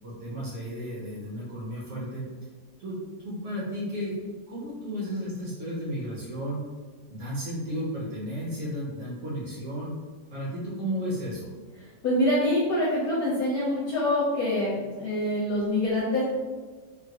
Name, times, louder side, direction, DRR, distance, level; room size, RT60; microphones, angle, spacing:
voice 1, 0.0-2.2 2.8-3.0 3.2-4.1 4.5-6.6 7.1-9.9 10.3-11.5, equal, 55° right, -7 dB, 1.0 m, -33 dB
voice 2, 12.0-16.2, left 1 dB, 60° left, -9 dB, 1.2 m, -25 dB
3.5 x 2.2 x 2.8 m, 1.4 s
omnidirectional pair, 2.0 m